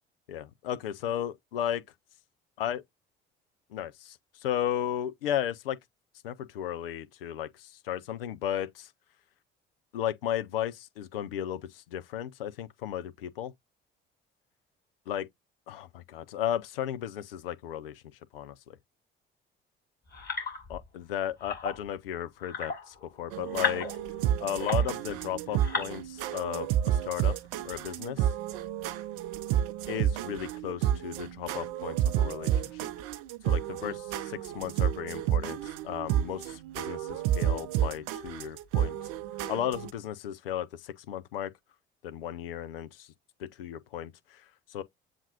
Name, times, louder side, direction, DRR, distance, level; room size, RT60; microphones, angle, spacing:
voice 1, 0.3-1.8 2.6-2.8 3.7-5.8 6.2-8.9 9.9-13.5 15.1-15.3 15.7-18.0 18.3-18.8 20.7-23.9 24.4-27.3 27.6-28.3 29.9-32.8 33.5-35.6 35.8-39.0 39.5-41.5 42.0-43.1 43.4-44.8, left 10 dB, 75° left, 0.5 m, -35 dB
sound 1, 20.1-20.8 21.4-21.9 22.4-25.1 25.5-25.9, left 5 dB, 35° left, 2.4 m, -35 dB
sound 2, 23.3-39.9, right 11 dB, 55° right, 0.6 m, -30 dB
7.2 x 2.5 x 2.7 m
figure-of-eight pair, 50°, 29 cm